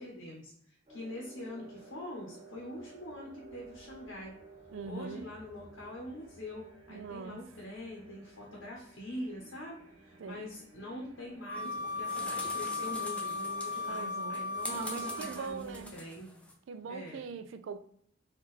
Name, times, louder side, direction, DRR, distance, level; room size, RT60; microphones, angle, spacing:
voice 1, 0.0-4.3 4.8-11.7 11.9-16.3 16.9-17.3, left 1 dB, 85° left, 0.9 m, -44 dB
sound 1, 0.9-15.9, right 3 dB, 30° right, 1.0 m, -54 dB
voice 2, 4.7-5.2 6.9-7.4 10.2-10.5 13.9-15.9 16.7-17.8, right 5 dB, 70° right, 0.4 m, -42 dB
Wind instrument woodwind instrument, 11.5-15.5, left 3 dB, 50° left, 0.6 m, -36 dB
sound 2, 11.5-16.5, left 1 dB, 5° left, 0.5 m, -45 dB
4.3 x 2.4 x 3.1 m
head